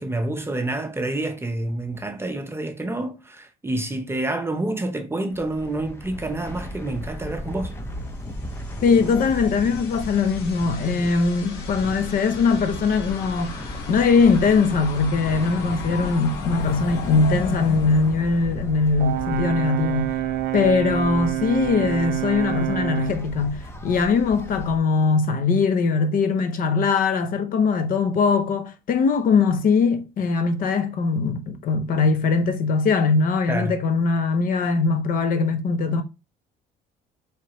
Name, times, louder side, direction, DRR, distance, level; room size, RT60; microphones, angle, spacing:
voice 1, 0.0-7.7 33.5-33.7, right 2 dB, 15° right, 0.6 m, -28 dB
sound 1, 5.3-24.8, equal, 15° left, 0.8 m, -36 dB
sound 2, 8.4-19.1, left 6 dB, 85° left, 1.3 m, -36 dB
voice 2, 8.8-20.2 20.5-36.0, left 4 dB, 55° left, 0.7 m, -21 dB
Brass instrument, 19.0-23.2, right 13 dB, 85° right, 0.5 m, -27 dB
4.5 x 3.3 x 2.9 m
cardioid pair, 110°, 17 cm